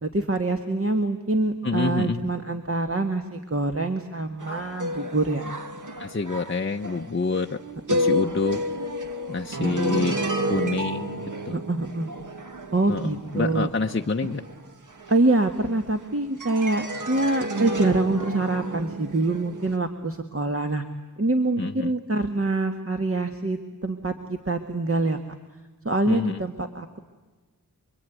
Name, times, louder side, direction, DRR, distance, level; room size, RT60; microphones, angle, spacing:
voice 1, 0.0-5.5 9.6-9.7 11.5-12.1 12.7-13.7 15.1-20.8 21.2-25.2 25.9-26.9, right 2 dB, 40° right, 5 dB, 1.7 m, -25 dB
voice 2, 1.6-2.3 6.0-7.6 7.9-8.6 9.3-10.2 10.5-11.5 12.9-14.4 21.6-21.9 26.1-26.4, left 4 dB, 35° left, 3 dB, 0.8 m, -27 dB
sound 1, 4.4-16.0 16.4-19.8, equal, 55° right, 2.1 m, -31 dB
28.0 x 23.0 x 9.4 m, 1.3 s
wide cardioid pair, 65°, 36 cm